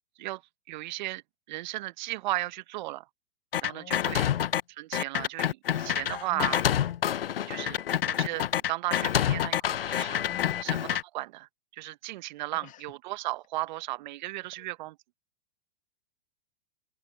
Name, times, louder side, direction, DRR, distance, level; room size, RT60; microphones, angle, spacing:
voice 1, 0.7-1.2 1.5-3.0 3.6-4.3 4.8-6.6 7.5-7.8 8.0-10.2 10.6-11.5 11.7-14.9, right 17 dB, 50° right, 1.1 m, -35 dB
sound 1, 3.5-4.6 4.9-11.0, left 10 dB, 70° left, 1.0 m, -27 dB
voice 2, 3.6-4.5 6.3-6.5 10.2-10.6 12.5-12.8 14.6-14.7, left 13 dB, 25° left, 2.1 m, -47 dB
open air
hypercardioid pair, 115°, 29 cm